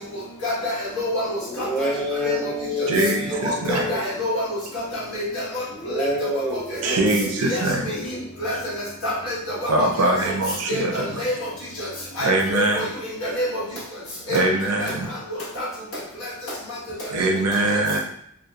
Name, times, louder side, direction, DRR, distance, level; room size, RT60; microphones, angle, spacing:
voice 1, 0.4-1.9 2.2-2.3 2.8-2.9 3.4-4.5 4.9-5.3 5.5-5.6 5.9-6.1 6.8-6.9 7.5-7.6 8.4-8.5 9.0-9.3 9.8-9.9 10.2-10.3 10.7-11.3 12.2-12.8 13.2-13.6 14.3-14.4 14.8-14.9 15.6-15.7, left 1 dB, 70° left, -7 dB, 1.2 m, -27 dB
voice 2, 1.4-4.1 5.7-7.3 8.0-8.2, equal, 5° left, -3 dB, 0.4 m, -28 dB
voice 3, 2.9-3.9 6.8-7.9 9.2-9.3 9.7-11.2 12.2-12.9 14.3-15.1 17.1-18.0, right 2 dB, 90° right, 2 dB, 0.5 m, -23 dB
2.9 x 2.2 x 2.3 m, 0.70 s
head